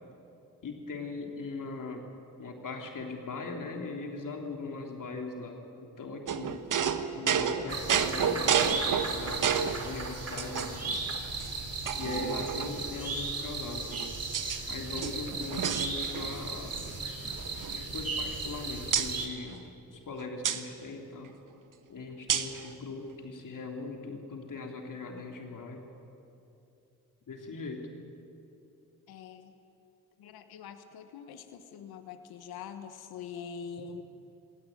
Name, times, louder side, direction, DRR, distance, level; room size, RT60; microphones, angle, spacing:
voice 1, 0.6-2.1 2.4-6.6 7.1-11.0 11.9-14.1 14.7-16.8 17.7-19.6 19.9-21.3 21.9-25.8 27.3-27.9, left 3 dB, 55° left, 2 dB, 3.5 m, -40 dB
sound 1, 6.3-9.8 10.4-11.0 11.4-11.5 11.9-12.9 13.7-14.6 14.9-16.5 16.7-16.9 17.3-18.5 18.9-19.1 20.4-20.6 22.3-22.6, right 7 dB, 55° right, 1.3 m, -30 dB
sound 2, 7.7-19.3, right 3 dB, 40° right, 3.7 m, -36 dB
voice 2, 29.1-29.5 30.2-34.0, left 6 dB, 80° left, 9 dB, 1.3 m, -44 dB
19.0 x 17.5 x 9.2 m, 2.8 s
supercardioid pair, 45°, 37 cm